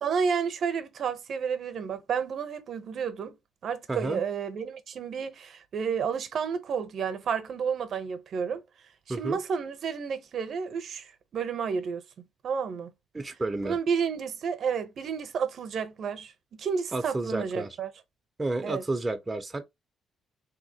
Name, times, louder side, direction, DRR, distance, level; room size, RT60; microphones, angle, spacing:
voice 1, 0.0-3.4 3.6-8.6 9.1-12.0 12.4-12.9 13.6-16.3 16.6-17.9 18.6-18.8, right 6 dB, 60° right, 0.7 m, -31 dB
voice 2, 3.9-4.2 9.1-9.4 13.1-13.8 16.9-17.7 18.4-19.6, right 2 dB, 20° right, 0.5 m, -31 dB
3.3 x 2.8 x 2.7 m
cardioid pair, 90°, 0 cm